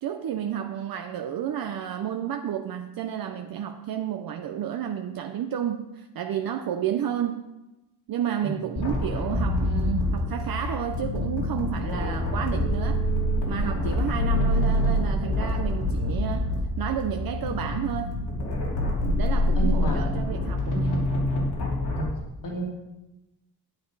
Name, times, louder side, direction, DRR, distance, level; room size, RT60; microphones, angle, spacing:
voice 1, 0.0-7.4 8.1-13.0 13.5-18.2 19.2-21.2, right 9 dB, 60° right, 5 dB, 0.7 m, -31 dB
sound 1, 8.8-22.0, left 1 dB, 75° left, 3.5 m, -26 dB
voice 2, 19.5-20.0 21.9-22.6, right 2 dB, 50° left, -1 dB, 2.6 m, -32 dB
10.5 x 8.6 x 4.7 m, 1.0 s
cardioid pair, 105°, 40 cm